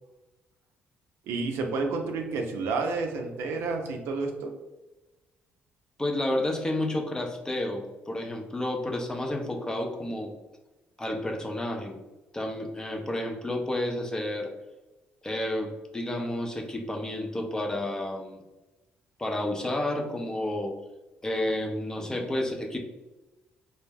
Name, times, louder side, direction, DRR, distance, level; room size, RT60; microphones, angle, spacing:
voice 1, 1.3-4.5, right 3 dB, 80° right, 3 dB, 0.4 m, -30 dB
voice 2, 6.0-10.3 11.0-12.0 12.3-14.5 15.2-18.4 19.2-20.8 21.2-22.8, left 1 dB, 15° left, 2 dB, 0.4 m, -30 dB
2.2 x 2.0 x 3.3 m, 1.1 s
cardioid pair, 100°, 4 cm